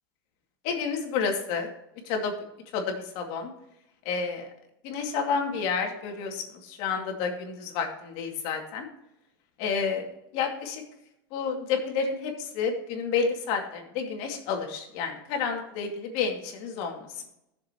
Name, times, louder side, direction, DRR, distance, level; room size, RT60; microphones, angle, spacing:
voice 1, 0.6-1.7 2.1-2.3 2.7-3.5 4.0-4.5 4.8-8.9 9.6-10.0 10.3-10.8 11.3-17.1, left 5 dB, 55° left, 2 dB, 2.4 m, -30 dB
15.5 x 6.9 x 3.0 m, 0.82 s
supercardioid pair, 130°, 12 cm